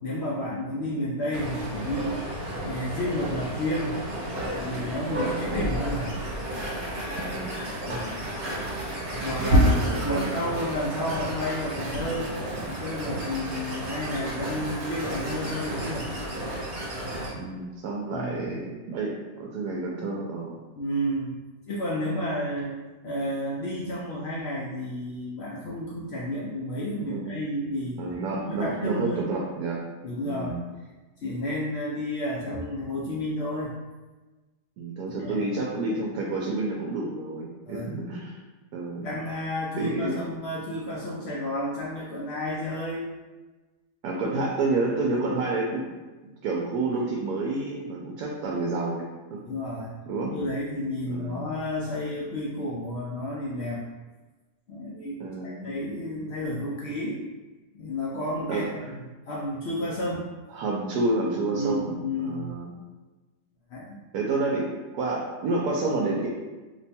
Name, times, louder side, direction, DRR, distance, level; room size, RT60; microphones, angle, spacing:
voice 1, 0.0-2.2 2.6-4.0 4.4-6.2 7.8-8.1 9.2-12.3 12.6-16.1 18.1-18.4 20.8-21.4 21.7-22.7 23.0-28.0 28.5-29.3 30.0-30.6 31.2-33.8 35.2-35.5 37.7-37.9 39.0-43.1 49.4-49.9 50.3-53.8 54.7-55.2 55.4-57.2 57.7-60.3 61.5-62.5 63.7-64.0, left 1 dB, 80° left, -5 dB, 0.5 m, -31 dB
sound 1, 1.3-17.3, right 1 dB, 45° right, 0.9 m, -30 dB
voice 2, 5.1-5.6 7.1-7.6 9.4-10.4 11.0-11.1 17.3-20.6 27.1-27.4 28.0-29.9 30.2-30.6 34.8-38.4 38.7-39.1 39.8-40.2 44.0-45.9 46.2-49.4 50.1-50.3 51.1-51.4 55.2-55.7 58.5-58.6 60.5-61.9 62.2-62.8 64.1-64.7 64.9-66.3, right 3 dB, 75° right, -2 dB, 1.0 m, -29 dB
2.9 x 2.2 x 4.1 m, 1.2 s
omnidirectional pair, 1.7 m